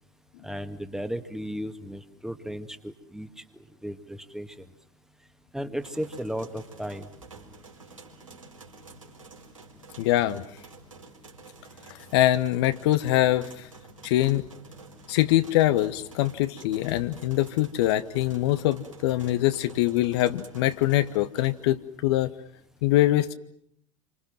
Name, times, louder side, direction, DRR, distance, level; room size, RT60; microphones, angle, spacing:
voice 1, 0.4-4.7 5.5-7.1, equal, 5° right, 10 dB, 1.9 m, -35 dB
sound 1, 5.8-21.7, right 3 dB, 80° right, 4.3 m, -49 dB
voice 2, 10.0-10.4 11.9-13.7 14.0-14.4 15.1-22.3 22.8-23.3, left 15 dB, 55° left, 12 dB, 1.1 m, -23 dB
28.5 x 25.5 x 7.6 m, 0.70 s
figure-of-eight pair, 80°, 17 cm